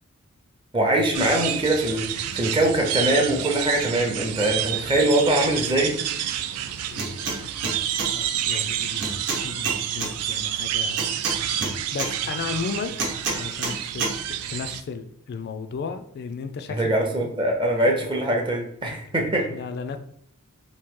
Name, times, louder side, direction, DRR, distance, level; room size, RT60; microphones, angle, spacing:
voice 1, 0.7-6.0 16.7-19.5, right 1 dB, 20° right, 1 dB, 0.5 m, -22 dB
sound 1, 1.1-14.8, right 10 dB, 85° right, 0.3 m, -29 dB
voice 2, 6.5-7.8 8.1-11.2 11.9-12.9 13.3-17.3 18.3-18.4 19.3-20.0, left 5 dB, 50° left, 9 dB, 0.3 m, -35 dB
sound 2, 7.0-7.4 7.6-8.1 9.0-10.1 11.0-12.1 13.0-13.7 14.0-14.1, right 3 dB, 55° right, 0.8 m, -28 dB
2.9 x 2.7 x 3.6 m, 0.72 s
head